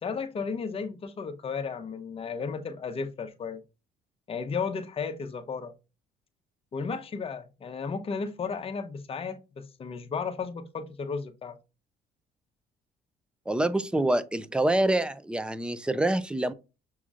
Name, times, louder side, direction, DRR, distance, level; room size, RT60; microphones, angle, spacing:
voice 1, 0.0-3.6 4.3-5.7 6.7-11.6, left 5 dB, 35° left, 0.8 m, -34 dB
voice 2, 13.5-16.5, right 1 dB, 5° right, 0.4 m, -26 dB
6.2 x 2.9 x 2.4 m
cardioid pair, 110°, 17 cm